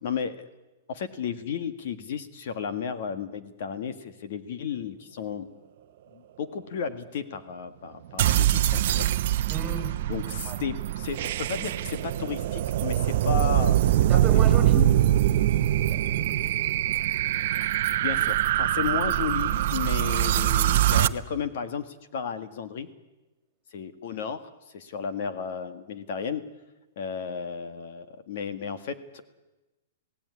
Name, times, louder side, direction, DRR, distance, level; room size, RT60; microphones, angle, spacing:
voice 1, 0.0-0.4 0.9-5.5 6.1-9.1 10.1-14.2 14.6-15.0 17.8-22.9 23.7-26.4 26.9-29.2, left 6 dB, 50° left, 10 dB, 1.8 m, -33 dB
sound 1, 8.2-21.1, right 13 dB, 50° right, 0.9 m, -23 dB
voice 2, 9.5-10.0 10.4-10.6 14.1-14.9 15.9-16.4, right 3 dB, 15° right, 7 dB, 3.5 m, -34 dB
28.5 x 17.5 x 9.7 m, 1.1 s
hypercardioid pair, 170°, 0 cm